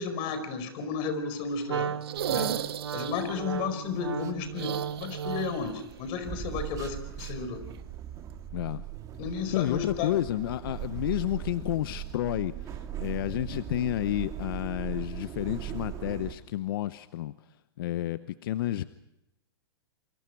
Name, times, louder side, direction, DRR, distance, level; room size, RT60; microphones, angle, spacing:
voice 1, 0.0-2.0 2.3-2.6 2.9-7.6 9.2-10.2, left 5 dB, 40° left, 9 dB, 4.9 m, -33 dB
Wind instrument woodwind instrument, 1.7-5.7, right 8 dB, 90° right, 0.9 m, -35 dB
sound 1, 2.0-3.4 4.5-5.7 6.0-6.1 7.7-7.8, right 10 dB, 70° right, 1.8 m, -35 dB
sound 2, 2.2-16.3, right 11 dB, 25° right, 2.0 m, -40 dB
voice 2, 8.5-8.8 9.5-17.3 17.8-18.8, left 14 dB, 60° left, 14 dB, 0.8 m, -30 dB
28.0 x 24.5 x 4.6 m, 0.88 s
hypercardioid pair, 130°, 13 cm